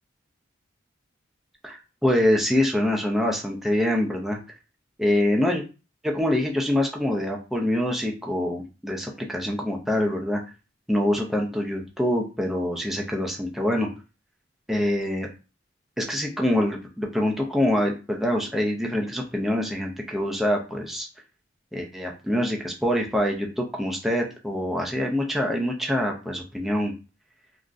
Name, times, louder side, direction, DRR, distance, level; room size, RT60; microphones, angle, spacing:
voice 1, 1.6-4.4 5.0-5.6 6.0-10.4 10.9-13.9 14.7-15.3 16.0-21.1 21.7-26.9, left 1 dB, ahead, 0 dB, 0.4 m, -25 dB
3.5 x 2.0 x 2.5 m, 0.32 s
head